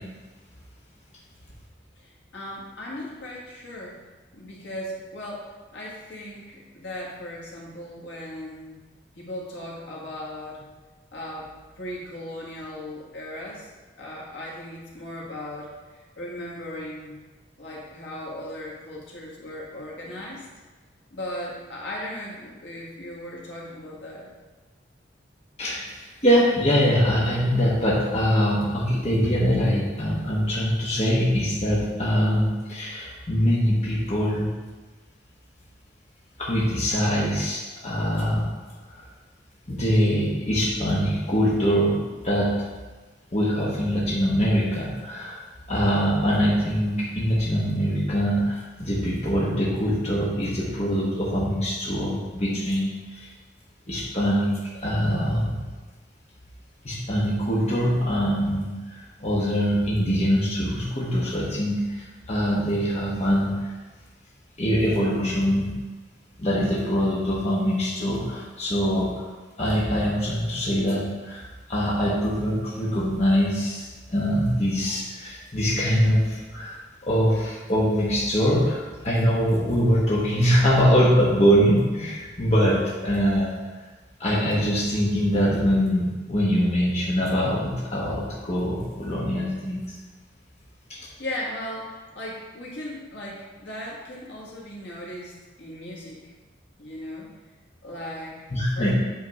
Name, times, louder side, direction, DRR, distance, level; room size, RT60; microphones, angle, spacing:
voice 1, 2.0-4.0 4.3-8.8 9.2-10.7 11.1-11.5 11.8-13.7 14.0-17.2 17.6-20.5 21.1-24.3 90.9-96.3 96.8-97.3 97.8-98.4 98.8-98.9, left 1 dB, 75° left, -4 dB, 1.8 m, -37 dB
voice 2, 25.6-34.5 36.4-38.4 38.9-39.1 39.7-42.0 42.2-42.6 43.3-45.4 45.7-53.3 53.9-55.6 56.8-63.7 64.6-65.7 66.4-69.3 69.6-83.5 84.2-89.9 90.9-91.1 98.5-98.9, equal, 35° left, -6 dB, 1.2 m, -23 dB
8.0 x 3.8 x 4.8 m, 1.3 s
head